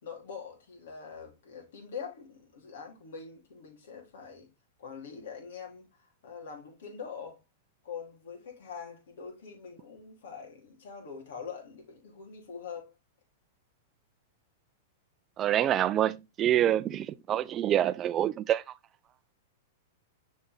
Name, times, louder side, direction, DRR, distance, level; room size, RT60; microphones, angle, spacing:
voice 1, 0.0-4.5 4.8-7.4 7.8-12.9, left 6 dB, 75° left, 3.8 m, -44 dB
voice 2, 15.4-18.6, right 11 dB, 30° right, 0.5 m, -26 dB
7.0 x 5.4 x 3.6 m
hypercardioid pair, 135°, 0 cm